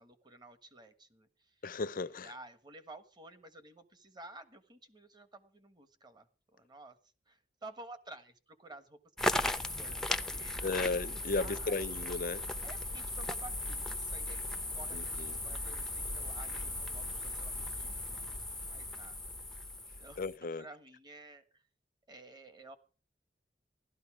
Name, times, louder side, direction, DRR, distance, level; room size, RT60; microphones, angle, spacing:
voice 1, 0.0-1.6 2.2-7.0 7.3-9.0 9.4-10.6 11.4-11.8 12.6-19.6 20.0-21.6 22.1-22.8, right 2 dB, 25° right, 1.4 m, -53 dB
voice 2, 1.6-2.3 10.6-12.4 14.9-15.4 20.2-20.7, left 3 dB, 55° left, 0.6 m, -35 dB
sound 1, 9.2-20.4, left 1 dB, 5° left, 0.6 m, -37 dB
15.0 x 12.5 x 4.9 m
head